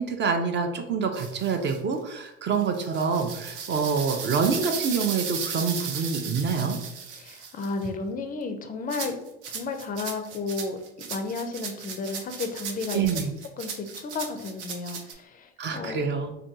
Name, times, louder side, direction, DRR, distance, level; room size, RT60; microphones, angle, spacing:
voice 1, 0.0-6.8 12.9-13.3 15.6-16.3, right 5 dB, 35° right, 5 dB, 0.4 m, -26 dB
sound 1, 1.1-1.8 2.6-7.9 8.9-15.1, right 6 dB, 80° right, 0.6 m, -36 dB
voice 2, 7.1-9.2 9.5-10.8 11.1-13.1 13.6-16.0, left 3 dB, 25° left, 6 dB, 0.4 m, -33 dB
3.4 x 2.3 x 2.6 m, 0.86 s
hypercardioid pair, 80°, 34 cm